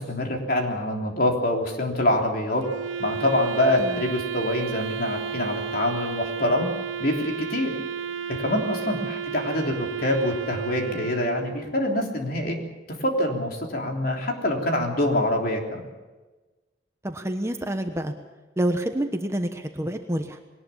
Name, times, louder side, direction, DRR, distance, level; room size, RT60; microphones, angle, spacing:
voice 1, 0.0-2.6 3.0-6.7 7.0-7.7 8.3-12.6 12.9-15.9, left 1 dB, 50° left, 2 dB, 3.4 m, -25 dB
Wind instrument woodwind instrument, 2.6-11.9, right 7 dB, 85° right, 0.8 m, -32 dB
voice 2, 17.0-18.1 18.6-20.4, right 1 dB, 15° right, 6 dB, 1.1 m, -28 dB
21.5 x 19.0 x 7.2 m, 1.2 s
head